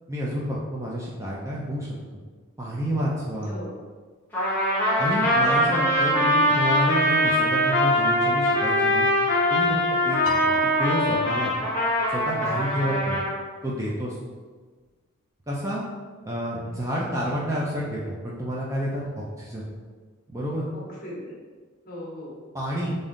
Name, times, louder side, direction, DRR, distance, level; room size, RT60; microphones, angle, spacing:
voice 1, 0.1-2.0 2.6-3.5 5.0-9.1 9.5-9.8 10.0-10.5 10.8-11.5 12.1-13.2 13.6-14.2 15.5-15.8 16.2-19.7 20.3-20.6 22.5-23.0, equal, 15° right, -5 dB, 0.4 m, -29 dB
voice 2, 3.3-3.7 10.4-10.8 20.7-21.3 21.8-22.4, left 1 dB, 40° left, -5 dB, 1.1 m, -39 dB
Trumpet, 4.3-13.3, equal, 10° left, 0.9 m, -22 dB
Piano, 10.3-11.8, left 4 dB, 75° left, 0.3 m, -35 dB
3.5 x 2.7 x 3.7 m, 1.4 s
head